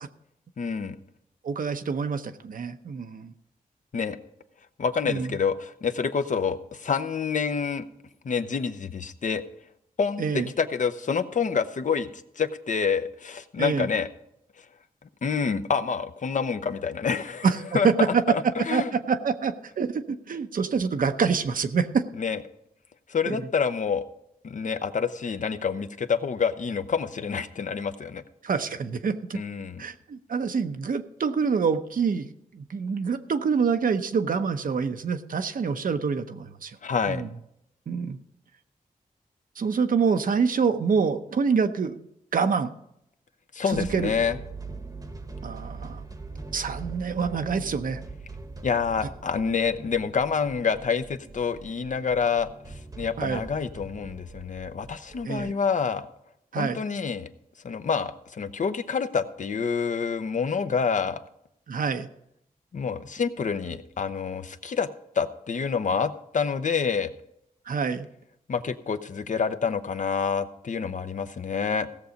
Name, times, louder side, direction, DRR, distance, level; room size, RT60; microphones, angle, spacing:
voice 1, 0.6-1.0 3.9-4.2 4.8-7.8 8.2-9.4 10.0-12.1 12.4-14.1 15.2-17.5 17.7-18.9 22.2-22.4 23.1-24.0 24.4-28.2 29.3-29.8 36.8-37.2 43.5-44.4 48.6-52.5 53.0-56.1 56.6-57.3 57.6-61.2 62.7-64.9 65.2-67.1 68.5-71.9, left 6 dB, 60° left, 9 dB, 0.7 m, -27 dB
voice 2, 1.4-3.3 5.1-5.4 10.2-10.5 13.6-13.9 17.4-17.9 18.7-22.0 23.3-23.4 28.4-29.4 29.8-36.8 37.1-37.3 37.9-38.2 39.6-42.1 42.3-42.7 43.7-44.1 45.4-46.0 46.5-48.0 53.2-53.4 55.2-55.5 56.5-56.8 61.7-62.1 67.7-68.1, right 5 dB, 70° right, 8 dB, 0.8 m, -26 dB
sound 1, 43.7-55.5, right 3 dB, 25° right, 1.0 m, -42 dB
16.5 x 7.0 x 5.2 m, 0.78 s
wide cardioid pair, 95°, 15 cm